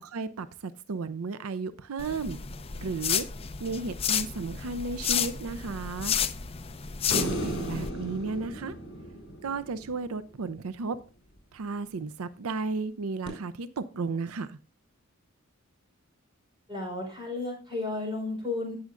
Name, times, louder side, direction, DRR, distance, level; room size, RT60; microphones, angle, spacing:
voice 1, 0.0-2.4 2.8-3.3 3.6-6.2 7.1-8.8 9.4-11.0 11.5-14.6, right 4 dB, 90° right, 0.5 m, -34 dB
sound 1, 2.0-7.9, left 8 dB, 25° left, 0.5 m, -31 dB
sound 2, 7.1-10.4 13.3-13.4, equal, 55° left, 4.2 m, -35 dB
voice 2, 16.7-18.8, left 2 dB, 25° right, 4.1 m, -33 dB
16.5 x 6.4 x 2.5 m
head